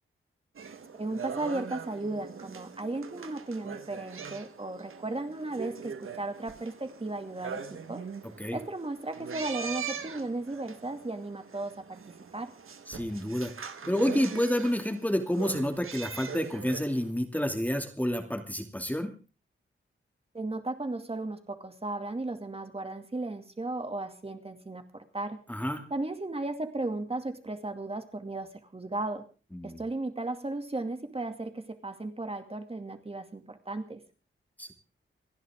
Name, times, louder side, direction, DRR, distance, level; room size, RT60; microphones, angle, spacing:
sound 1, 0.5-17.1, right 6 dB, 80° right, 1.5 m, -42 dB
voice 1, 1.0-8.0 8.5-12.5 20.3-25.4 25.9-29.3 29.6-34.0, right 2 dB, 30° right, 6 dB, 2.4 m, -35 dB
voice 2, 12.9-13.5 13.8-19.1 25.5-25.8 29.5-29.8 34.6-34.7, equal, 5° left, 4 dB, 2.6 m, -29 dB
28.5 x 11.0 x 3.7 m, 0.36 s
wide cardioid pair, 90°, 21 cm